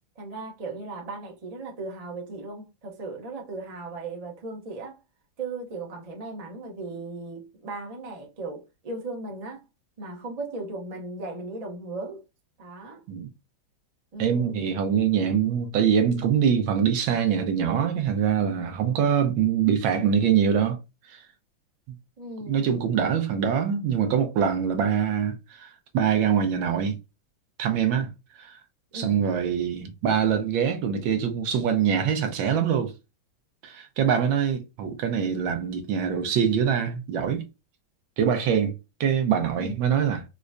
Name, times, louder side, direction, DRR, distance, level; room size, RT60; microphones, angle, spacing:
voice 1, 0.2-5.0 5.4-9.6 10.0-12.2 12.6-13.0 14.1-14.7 22.2-22.7 28.9-29.1 39.6-39.8, right 3 dB, 45° right, 0.4 m, -37 dB
voice 2, 14.2-20.8 21.1-21.2 22.5-27.0 27.6-28.1 28.4-28.6 28.9-32.9 33.6-37.5 38.2-38.7 39.0-40.2, right 8 dB, 75° right, 1.4 m, -24 dB
4.9 x 2.1 x 2.5 m
omnidirectional pair, 2.3 m